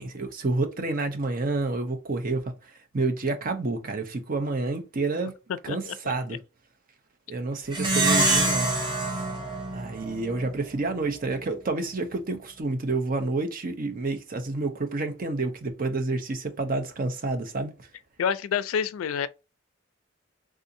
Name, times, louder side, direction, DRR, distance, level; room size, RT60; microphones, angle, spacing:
voice 1, 0.0-2.5 2.9-5.3 5.6-6.4 7.3-8.7 9.0-9.1 9.7-17.7, right 3 dB, 45° right, 0.6 m, -29 dB
voice 2, 5.7-6.1 18.2-19.3, left 7 dB, 90° left, 0.3 m, -28 dB
Plucked string instrument, 7.7-10.5, right 2 dB, 20° right, 0.9 m, -25 dB
3.6 x 2.6 x 2.6 m
head